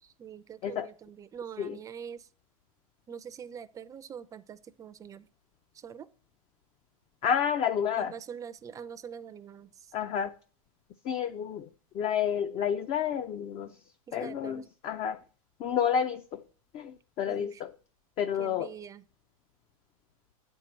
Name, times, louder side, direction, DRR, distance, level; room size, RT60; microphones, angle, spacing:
voice 1, 0.0-2.3 3.1-5.3 5.7-6.1 8.0-9.9 14.1-14.6 17.3-17.6 18.4-19.0, right 8 dB, 15° right, 0.5 m, -44 dB
voice 2, 7.2-8.1 9.9-10.3 11.0-11.7 11.9-13.8 14.1-15.2 15.6-16.4 16.7-17.7 18.2-18.7, left 8 dB, 30° left, 0.5 m, -30 dB
8.5 x 4.5 x 7.3 m
hypercardioid pair, 130°, 19 cm